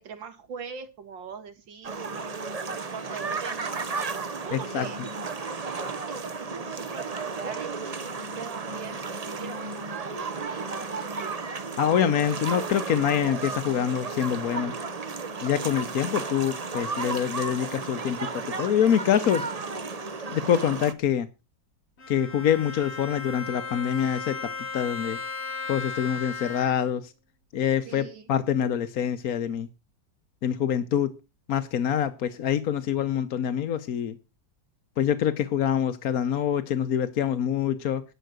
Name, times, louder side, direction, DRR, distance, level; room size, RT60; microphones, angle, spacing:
voice 1, 0.0-2.3 2.6-3.9 4.3-7.7 8.2-11.4 27.9-28.3, right 6 dB, 85° right, 9 dB, 2.6 m, -42 dB
sound 1, 1.8-20.9, right 4 dB, 30° right, 0.7 m, -33 dB
voice 2, 4.5-4.9 11.8-14.7 15.4-19.4 20.3-21.3 22.1-24.4 24.7-25.2 25.7-27.1 27.5-29.7 30.4-31.2 31.5-34.2 35.0-38.0, left 9 dB, 60° left, 9 dB, 1.2 m, -25 dB
Bowed string instrument, 22.0-27.0, left 4 dB, 40° left, 1.4 m, -36 dB
11.5 x 6.2 x 7.9 m, 0.29 s
omnidirectional pair, 2.0 m